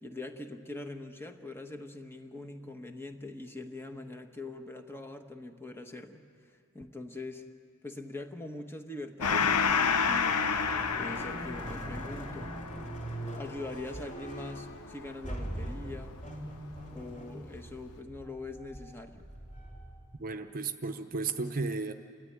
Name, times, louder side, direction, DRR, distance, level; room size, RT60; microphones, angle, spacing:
voice 1, 0.0-7.5 7.8-10.4 10.9-12.5 13.3-16.1 16.9-19.2, left 2 dB, 10° left, 5 dB, 1.2 m, -43 dB
Gong, 9.2-16.2, left 6 dB, 90° left, 0.9 m, -31 dB
sound 1, 10.1-20.2, right 1 dB, 35° left, 3.7 m, -42 dB
voice 2, 20.2-21.9, right 4 dB, 40° right, 8 dB, 0.9 m, -34 dB
29.5 x 13.5 x 9.3 m, 2.4 s
head